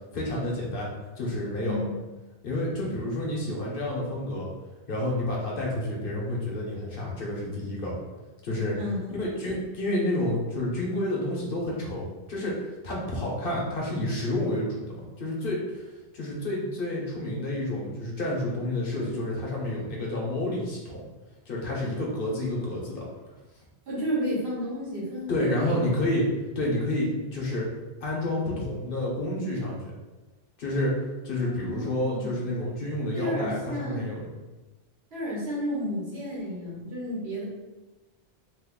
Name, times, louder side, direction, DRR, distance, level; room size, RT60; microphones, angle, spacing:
voice 1, 0.1-0.9 1.2-1.8 2.4-4.5 4.9-8.0 8.4-8.8 9.2-21.0 21.5-23.0 25.3-26.3 26.5-27.7 28.0-29.8 30.6-30.9 31.2-34.2, left 1 dB, 60° left, -3 dB, 0.8 m, -29 dB
voice 2, 1.6-1.9 8.8-9.2 23.9-25.9 31.4-32.4 33.1-34.1 35.1-37.4, equal, 70° right, -6 dB, 1.3 m, -32 dB
2.8 x 2.4 x 3.6 m, 1.1 s
omnidirectional pair, 1.1 m